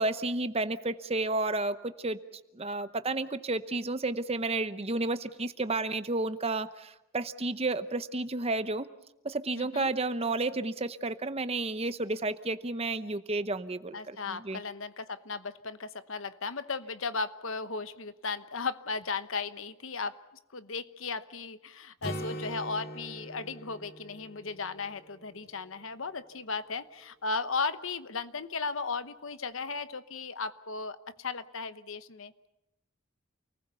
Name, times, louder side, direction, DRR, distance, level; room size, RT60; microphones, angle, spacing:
voice 1, 0.0-2.2 2.5-8.9 9.2-14.6, right 2 dB, 30° right, 12 dB, 0.8 m, -31 dB
voice 2, 9.6-9.9 13.9-20.2 20.5-32.3, left 4 dB, 65° left, 12 dB, 1.0 m, -36 dB
Acoustic guitar, 22.0-25.7, equal, 50° left, 3.1 m, -42 dB
28.5 x 19.5 x 7.0 m, 0.93 s
head